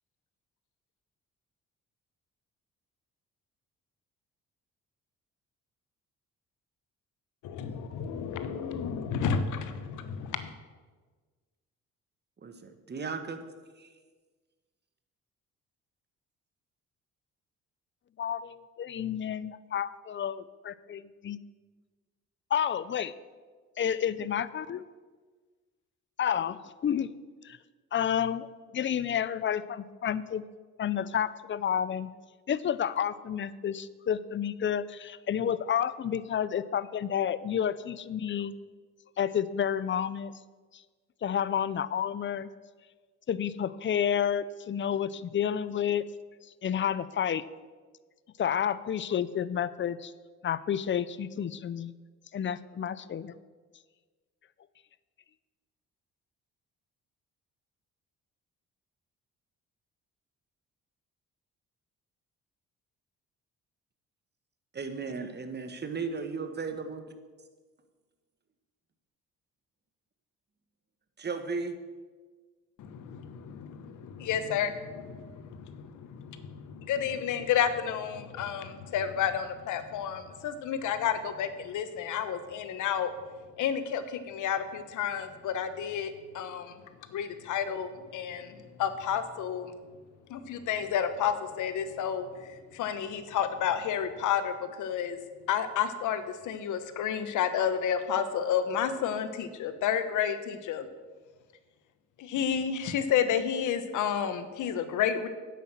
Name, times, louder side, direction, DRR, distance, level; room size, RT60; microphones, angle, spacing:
voice 1, 7.4-10.5 72.8-83.1 83.6-86.8 87.1-89.7 90.3-95.2 95.5-100.9 102.2-105.3, left 8 dB, 85° left, 11 dB, 1.1 m, -31 dB
voice 2, 12.4-13.4 13.8-13.9 64.7-67.0 71.2-71.7, right 4 dB, 35° right, 8 dB, 1.5 m, -35 dB
voice 3, 18.2-21.4 22.5-23.1 23.8-24.8 26.2-26.6 26.8-27.1 27.4-27.6 27.9-30.4 30.8-32.1 32.5-38.5 39.2-40.3 41.2-42.5 43.3-46.0 46.6-47.4 48.4-50.1 50.4-51.9 52.3-53.3, left 9 dB, 40° left, 17 dB, 0.6 m, -30 dB
9.8 x 8.4 x 7.6 m, 1.4 s
cardioid pair, 90°, 30 cm